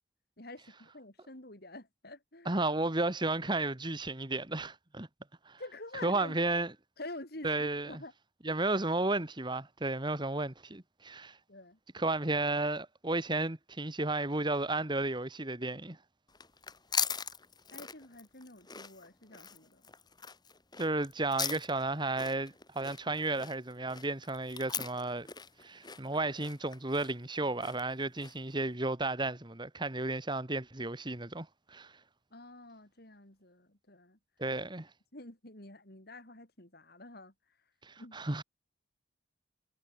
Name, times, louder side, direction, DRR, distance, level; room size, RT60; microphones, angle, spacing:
voice 1, 0.4-2.6 5.6-6.4 7.0-8.1 8.5-8.6 11.5-11.8 17.7-19.8 32.3-34.2 35.1-37.3 38.0-38.2, left 2 dB, 55° left, 4.8 m, -48 dB
voice 2, 2.4-5.1 5.4-5.6 6.0-6.7 7.4-8.0 8.4-11.4 11.9-16.0 20.8-25.3 25.6-31.9 34.4-34.9 37.8-38.4, right 2 dB, 25° right, 1.8 m, -33 dB
sound 1, 16.3-28.5, left 6 dB, 20° left, 3.8 m, -40 dB
head